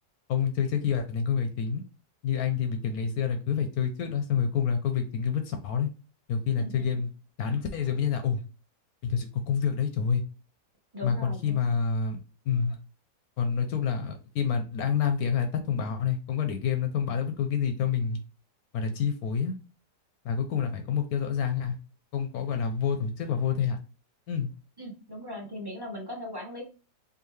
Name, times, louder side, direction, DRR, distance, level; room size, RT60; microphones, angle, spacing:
voice 1, 0.3-1.8 2.2-5.9 6.3-7.1 7.4-8.4 9.0-10.2 11.0-12.2 12.5-12.8 13.4-18.2 18.7-19.5 20.2-21.8 22.1-23.8 24.3-24.5, left 7 dB, 70° left, 6 dB, 0.9 m, -28 dB
voice 2, 10.9-11.8 24.8-26.6, left 1 dB, 15° right, -1 dB, 0.9 m, -39 dB
4.7 x 2.7 x 3.1 m, 0.34 s
omnidirectional pair, 1.9 m